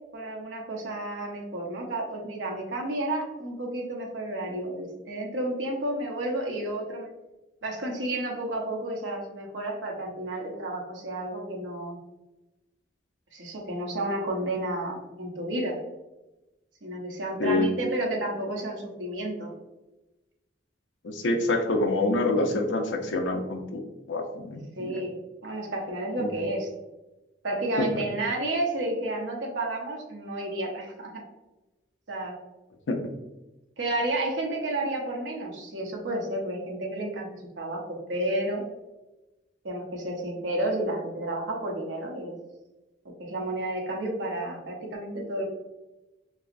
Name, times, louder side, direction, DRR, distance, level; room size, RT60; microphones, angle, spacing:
voice 1, 0.1-7.1 7.6-12.0 13.3-15.8 16.8-19.5 24.8-25.1 25.4-26.7 27.4-31.2 32.1-32.4 33.8-37.3 37.6-37.8 38.1-38.6 39.6-42.4 43.2-45.4, right 1 dB, 80° right, 0 dB, 0.9 m, -31 dB
voice 2, 21.0-25.0 26.2-26.5 27.8-27.9 32.9-33.0, left 2 dB, 90° left, 5 dB, 0.6 m, -27 dB
5.6 x 2.0 x 2.5 m, 1.0 s
head